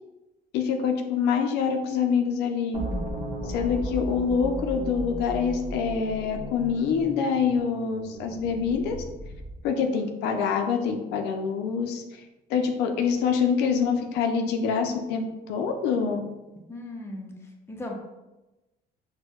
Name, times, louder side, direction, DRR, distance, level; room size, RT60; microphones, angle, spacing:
voice 1, 0.5-2.8 3.4-9.0 9.6-12.0 12.5-16.2, left 6 dB, 85° left, 4 dB, 0.4 m, -25 dB
sound 1, 2.7-9.6, equal, 40° right, 1.0 m, -35 dB
voice 2, 16.7-17.9, left 1 dB, 15° left, 1 dB, 0.5 m, -38 dB
4.4 x 2.1 x 2.3 m, 1.0 s
cardioid pair, 110°, 17 cm